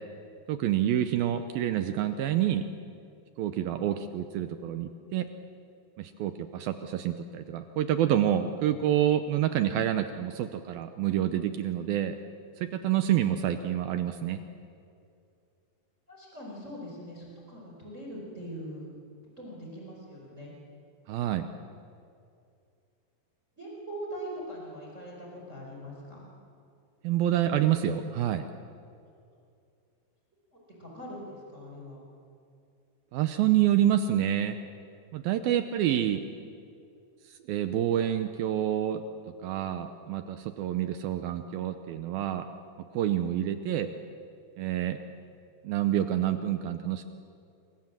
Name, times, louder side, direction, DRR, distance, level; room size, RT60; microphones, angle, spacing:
voice 1, 0.5-2.6 3.4-5.3 6.0-12.2 12.6-14.4 21.1-21.5 27.0-28.5 33.1-34.6 35.1-36.2 37.5-39.0 39.4-42.5 42.9-43.9 44.6-45.0 45.6-47.0, right 11 dB, 75° right, 9 dB, 2.4 m, -27 dB
voice 2, 16.1-18.9 19.4-20.5 23.6-26.2 30.5-32.0, equal, 15° right, -2 dB, 4.6 m, -42 dB
28.0 x 24.0 x 7.5 m, 2.5 s
omnidirectional pair, 4.7 m